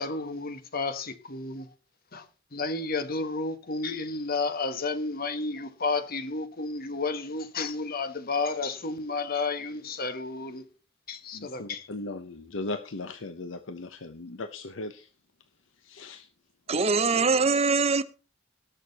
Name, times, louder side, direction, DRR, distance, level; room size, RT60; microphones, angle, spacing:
voice 1, 0.0-1.7 2.1-2.2 2.5-10.6 11.1-11.9, left 3 dB, 45° left, 1.3 m, -31 dB
voice 2, 11.3-15.1 15.8-16.3, left 2 dB, 65° left, 0.8 m, -38 dB
voice 3, 16.7-18.0, right 4 dB, 30° right, 0.8 m, -23 dB
19.0 x 6.5 x 4.1 m
head